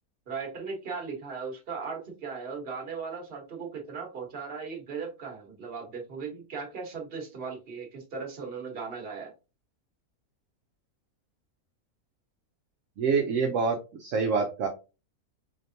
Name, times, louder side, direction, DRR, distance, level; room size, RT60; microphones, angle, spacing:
voice 1, 0.3-9.3, right 5 dB, 45° right, 2 dB, 1.2 m, -37 dB
voice 2, 13.0-14.7, right 5 dB, 65° right, 2 dB, 1.0 m, -26 dB
4.2 x 3.2 x 2.7 m, 0.30 s
omnidirectional pair, 1.6 m